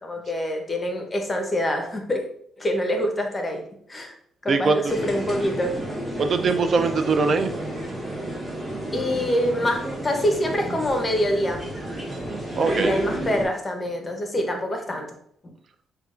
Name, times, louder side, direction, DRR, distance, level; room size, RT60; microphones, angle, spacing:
voice 1, 0.0-2.2 2.6-3.6 3.9-4.1 4.4-5.8 8.9-11.6 12.6-15.2, equal, 25° left, 3 dB, 0.7 m, -25 dB
voice 2, 4.5-4.8 6.2-7.5 12.5-12.9, right 4 dB, 50° right, 8 dB, 0.4 m, -21 dB
sound 1, 4.9-13.5, right 1 dB, 15° right, 1.2 m, -31 dB
5.5 x 2.3 x 2.4 m, 0.65 s
cardioid pair, 90°, 0 cm